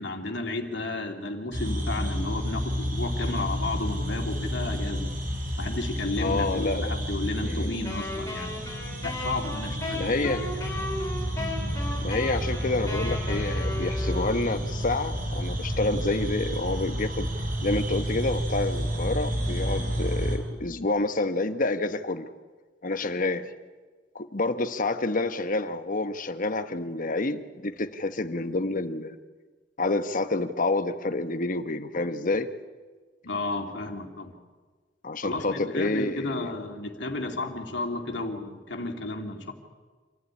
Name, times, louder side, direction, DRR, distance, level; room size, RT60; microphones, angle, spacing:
voice 1, 0.0-5.1 5.6-8.6 9.0-10.6 33.2-34.4 35.2-39.5, left 2 dB, 70° left, 3 dB, 2.7 m, -33 dB
sound 1, 1.5-20.4, equal, 50° right, 4.5 m, -30 dB
voice 2, 6.2-6.9 7.4-7.8 9.9-10.5 12.0-17.3 17.6-22.3 22.8-23.5 24.1-29.2 29.8-32.5 35.0-36.5, left 2 dB, 45° left, 10 dB, 1.2 m, -28 dB
Wind instrument woodwind instrument, 7.8-14.7, left 1 dB, 20° left, 5.9 m, -36 dB
26.5 x 14.5 x 9.8 m, 1.4 s
head